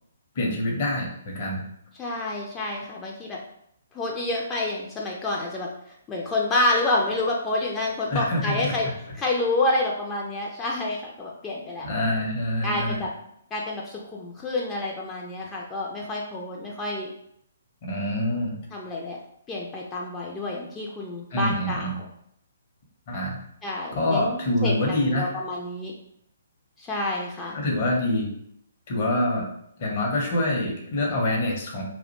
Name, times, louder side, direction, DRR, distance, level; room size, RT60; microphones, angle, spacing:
voice 1, 0.3-1.6 8.1-8.8 11.8-13.1 17.8-18.7 21.3-21.9 23.1-23.4 23.9-25.4 27.5-28.3 28.9-29.5 29.8-31.8, left 1 dB, 40° left, -1 dB, 0.7 m, -26 dB
voice 2, 2.0-3.4 3.9-8.9 9.2-11.9 12.6-13.1 13.5-17.1 18.7-19.2 19.5-21.9 23.6-25.9 26.8-27.6, left 2 dB, 15° left, -3 dB, 0.3 m, -28 dB
2.4 x 2.1 x 2.7 m, 0.72 s
figure-of-eight pair, 130°, 0 cm